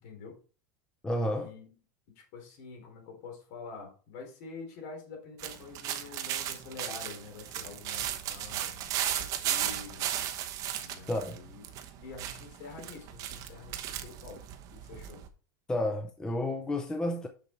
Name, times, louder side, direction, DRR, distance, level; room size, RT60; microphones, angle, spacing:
voice 1, 0.0-0.4 1.4-1.7 2.2-10.1 10.8-11.6 12.0-14.5 14.8-15.2, left 4 dB, 50° left, 3.6 m, -46 dB
voice 2, 1.0-1.5 11.1-11.4 15.7-17.3, left 1 dB, 5° left, 0.5 m, -31 dB
sound 1, 5.4-15.3, right 11 dB, 35° right, 0.9 m, -36 dB
6.9 x 6.7 x 4.4 m
supercardioid pair, 170°, 10 cm